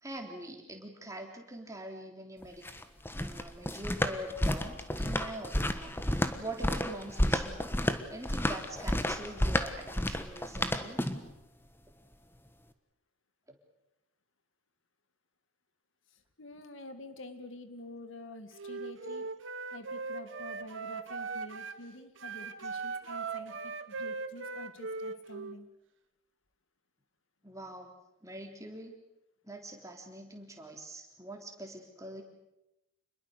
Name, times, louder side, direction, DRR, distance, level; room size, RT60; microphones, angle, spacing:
voice 1, 0.0-2.6 3.1-5.9 6.4-7.7 8.1-11.0 27.4-27.9 28.2-28.9 29.4-32.2, right 1 dB, 15° right, 2 dB, 3.5 m, -43 dB
sound 1, 2.4-11.3, left 1 dB, 10° left, 1.3 m, -31 dB
voice 2, 16.4-19.3 19.7-25.7, left 1 dB, 65° left, 9 dB, 2.1 m, -48 dB
Wind instrument woodwind instrument, 18.5-21.8 22.2-25.6, right 4 dB, 65° right, 1.5 m, -39 dB
28.0 x 21.5 x 6.8 m, 0.90 s
head